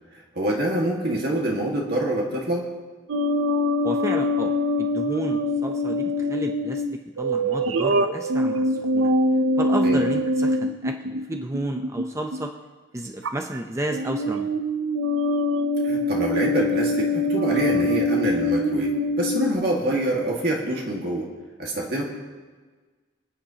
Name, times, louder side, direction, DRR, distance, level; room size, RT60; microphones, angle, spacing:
voice 1, 0.1-2.7 9.8-10.0 15.8-21.3 21.6-22.0, right 1 dB, 55° right, -2 dB, 1.9 m, -26 dB
sound 1, 3.1-12.5 13.2-13.6 13.9-19.6, left 1 dB, 80° right, 0.6 m, -24 dB
voice 2, 3.8-6.8 7.2-9.1 9.6-12.5 12.9-14.5, right 1 dB, 15° right, 3 dB, 0.6 m, -32 dB
26.0 x 9.3 x 2.9 m, 1.4 s
head